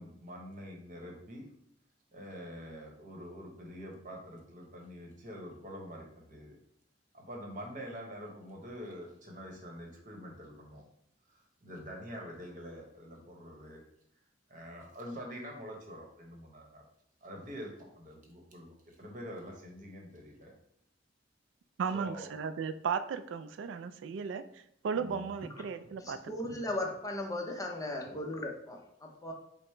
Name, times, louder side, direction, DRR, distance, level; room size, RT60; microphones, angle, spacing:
voice 1, 0.0-1.5 2.1-6.6 7.1-10.8 11.3-13.8 14.5-16.8 17.2-20.6 21.9-22.3 25.0-25.3, equal, 45° right, 0 dB, 1.0 m, -46 dB
voice 2, 21.8-24.4 24.8-26.5, right 6 dB, 80° right, 12 dB, 0.3 m, -35 dB
voice 3, 26.0-29.3, left 1 dB, 20° left, 2 dB, 0.6 m, -37 dB
4.9 x 2.1 x 4.4 m, 0.73 s
head